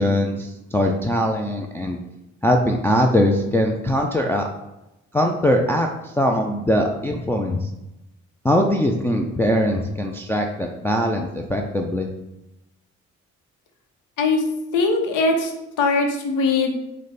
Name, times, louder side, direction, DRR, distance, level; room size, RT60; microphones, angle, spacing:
voice 1, 0.0-2.0 2.4-4.5 5.1-7.7 8.4-12.1, equal, 10° left, 1 dB, 0.3 m, -21 dB
voice 2, 14.7-15.5 15.8-16.7, left 3 dB, 85° left, 3 dB, 0.8 m, -20 dB
4.9 x 2.2 x 4.0 m, 0.93 s
cardioid pair, 90°, 30 cm